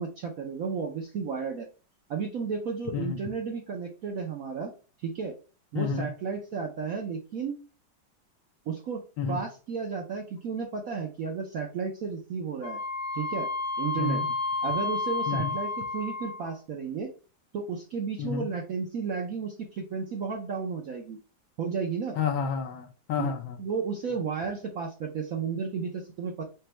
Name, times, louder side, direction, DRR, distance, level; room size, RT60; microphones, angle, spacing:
voice 1, 0.0-1.7 2.1-4.7 5.0-5.3 5.7-7.6 8.7-9.0 9.3-12.8 13.1-13.5 13.8-14.2 14.6-17.1 17.5-21.2 21.6-22.2 23.2-23.3 23.6-26.4, right 5 dB, 70° right, 0.8 m, -33 dB
voice 2, 5.7-6.1 9.2-9.4 14.0-14.3 15.3-15.5 18.2-18.5 22.2-23.6, left 6 dB, 75° left, 1.5 m, -30 dB
Wind instrument woodwind instrument, 12.6-16.5, left 3 dB, 50° left, 1.6 m, -31 dB
5.1 x 2.2 x 4.3 m
omnidirectional pair, 2.2 m